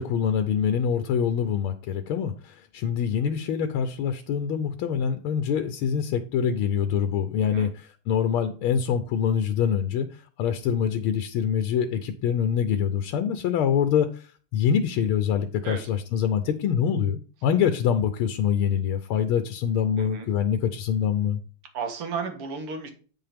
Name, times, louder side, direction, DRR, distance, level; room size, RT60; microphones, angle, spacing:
voice 1, 0.0-21.4, left 8 dB, 80° left, 9 dB, 1.6 m, -25 dB
voice 2, 21.7-22.9, right 5 dB, 80° right, 5 dB, 2.4 m, -33 dB
8.8 x 5.7 x 3.5 m, 0.39 s
omnidirectional pair, 2.4 m